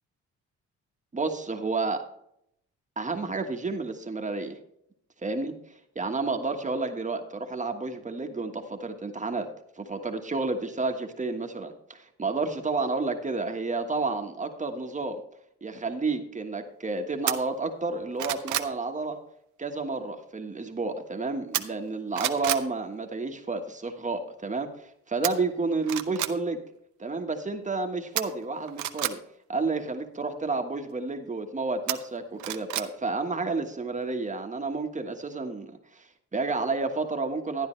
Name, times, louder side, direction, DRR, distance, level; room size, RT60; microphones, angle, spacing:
voice 1, 1.1-2.1 3.0-4.6 5.2-5.6 5.9-9.5 9.8-15.2 15.6-19.2 19.6-26.6 27.0-29.2 29.5-37.7, right 3 dB, 25° right, 5 dB, 1.4 m, -30 dB
sound 1, 17.3-17.4 17.9-18.7 21.5-21.9 22.1-22.6 25.2-25.3 25.8-26.3 28.2-29.1 31.9-32.9 33.3-33.4, right 12 dB, 75° right, 0.8 m, -29 dB
12.0 x 10.0 x 3.2 m, 0.75 s
cardioid pair, 90°, 30 cm